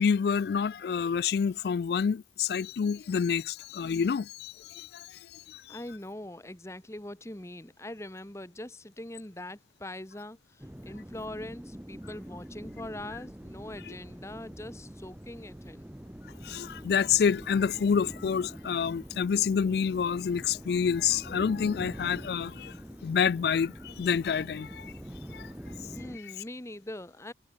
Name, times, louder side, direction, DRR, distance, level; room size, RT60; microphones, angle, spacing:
voice 1, 0.0-5.1 5.3-5.8 13.9-14.0 16.4-22.7 23.0-24.9 25.3-25.5, left 6 dB, 55° left, 0.3 m, -28 dB
voice 2, 5.7-10.4 10.8-15.9 25.9-27.3, left 1 dB, 15° left, 1.1 m, -42 dB
sound 1, 10.6-26.2, equal, 10° right, 0.6 m, -44 dB
head